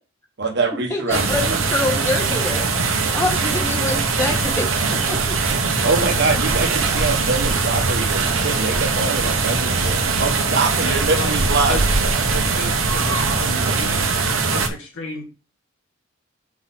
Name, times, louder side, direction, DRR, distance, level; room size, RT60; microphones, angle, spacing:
voice 1, 0.4-1.6 5.5-11.8, right 3 dB, 60° right, 4 dB, 1.2 m, -24 dB
voice 2, 0.9-5.4, left 2 dB, 15° left, 1 dB, 1.4 m, -26 dB
sound 1, 1.1-14.7, right 4 dB, 85° right, 1.0 m, -21 dB
voice 3, 10.8-11.3 11.7-11.9 12.3-14.1 14.5-15.2, left 1 dB, 75° left, 0 dB, 2.2 m, -32 dB
4.8 x 3.9 x 5.8 m, 0.34 s
head